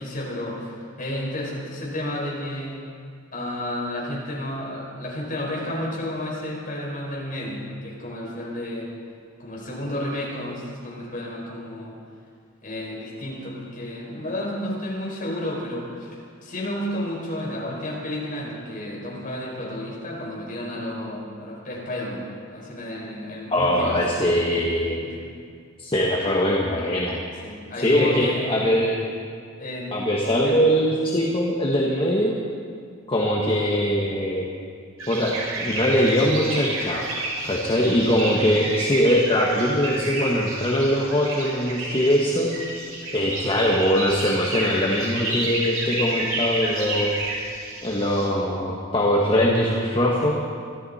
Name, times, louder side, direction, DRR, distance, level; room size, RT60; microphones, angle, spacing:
voice 1, 0.0-2.8 3.3-8.9 9.4-12.0 12.6-22.2 22.5-24.0 25.1-25.2 27.4-28.8 29.6-29.9 30.2-30.6, left 1 dB, 40° left, -4 dB, 5.0 m, -31 dB
voice 2, 23.5-25.0 25.8-27.2 27.8-29.0 29.9-32.3 33.1-34.5 35.1-37.0 37.4-42.7 43.1-47.1 47.8-50.3, equal, 25° left, -3 dB, 1.5 m, -22 dB
sound 1, 35.0-48.3, right 2 dB, 85° right, 5.4 m, -30 dB
24.0 x 14.0 x 4.3 m, 2.2 s
head